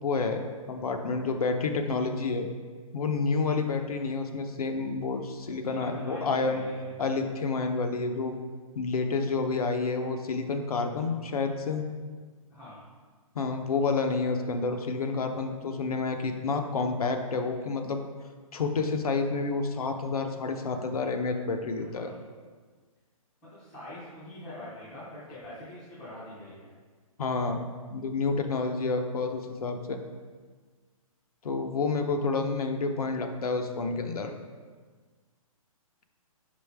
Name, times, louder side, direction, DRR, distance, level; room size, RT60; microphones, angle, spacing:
voice 1, 0.0-2.5 2.9-6.6 7.0-8.4 8.8-11.8 13.3-18.0 18.5-22.1 27.2-27.6 27.9-30.0 31.4-34.3, left 4 dB, 85° left, 5 dB, 0.7 m, -29 dB
voice 2, 5.4-7.0 12.5-12.8 21.8-22.1 23.4-26.7, left 1 dB, 5° left, -10 dB, 0.4 m, -44 dB
5.5 x 5.1 x 3.4 m, 1.5 s
hypercardioid pair, 180°, 18 cm